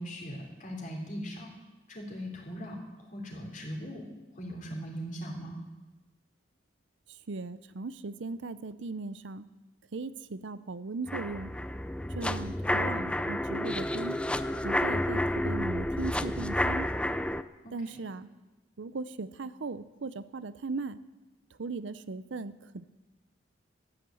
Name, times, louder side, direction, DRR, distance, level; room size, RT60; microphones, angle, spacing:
voice 1, 0.0-1.5 1.9-4.0 4.3-5.6 17.6-18.0, equal, 45° left, 0 dB, 3.5 m, -40 dB
voice 2, 7.1-9.5 9.9-11.5 12.1-14.2 14.6-16.9 17.7-18.3 18.8-21.0 21.6-22.8, right 3 dB, 75° right, 15 dB, 0.6 m, -38 dB
sound 1, 11.1-17.4, left 1 dB, 5° left, 0.4 m, -30 dB
13.5 x 10.0 x 7.7 m, 1.1 s
head